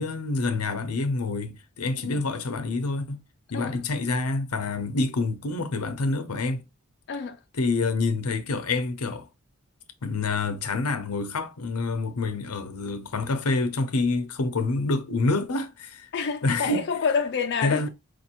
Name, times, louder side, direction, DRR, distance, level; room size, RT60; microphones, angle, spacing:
voice 1, 0.0-3.2 3.5-6.6 7.6-9.3 10.0-16.1 16.4-16.8 17.6-17.9, left 3 dB, 80° left, 0.7 m, -27 dB
voice 2, 16.1-17.9, left 5 dB, 50° left, 0.4 m, -28 dB
4.8 x 2.6 x 2.9 m
head